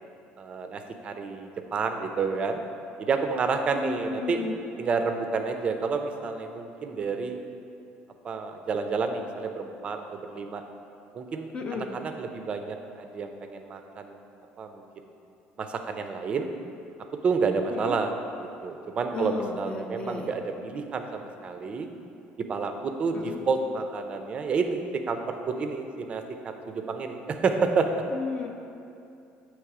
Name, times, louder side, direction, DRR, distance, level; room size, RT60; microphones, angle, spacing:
voice 1, 0.4-2.6 3.0-4.4 4.8-7.4 8.2-10.6 11.1-14.2 14.6-14.8 15.6-16.5 17.2-18.1 18.6-21.9 22.4-28.0, right 4 dB, 30° right, 6 dB, 0.4 m, -29 dB
voice 2, 3.8-4.5 11.5-11.9 17.7-18.0 19.1-20.3 23.1-23.3 28.1-28.5, left 4 dB, 30° left, 2 dB, 0.4 m, -34 dB
7.6 x 3.1 x 4.8 m, 2.6 s
cardioid pair, 150°, 4 cm